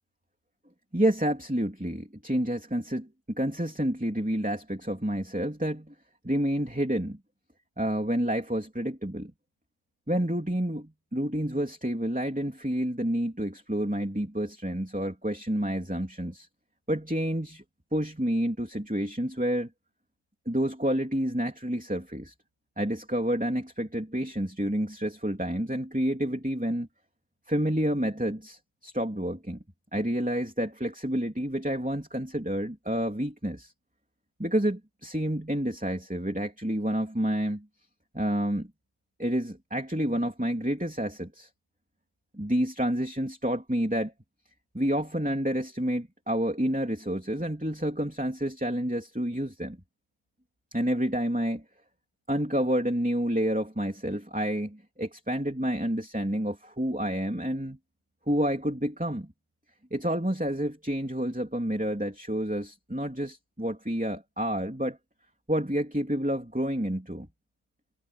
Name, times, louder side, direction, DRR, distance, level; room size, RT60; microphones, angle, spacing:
voice 1, 0.9-5.9 6.2-7.2 7.8-9.3 10.1-16.5 16.9-17.6 17.9-19.7 20.5-22.3 22.8-26.9 27.5-29.6 29.9-33.7 34.4-37.7 38.1-38.7 39.2-41.5 42.3-44.1 44.7-49.8 50.7-51.6 52.3-57.8 58.3-59.3 59.9-65.0 65.5-67.3, equal, 5° right, 3.0 m, -29 dB
omnidirectional pair, 1.3 m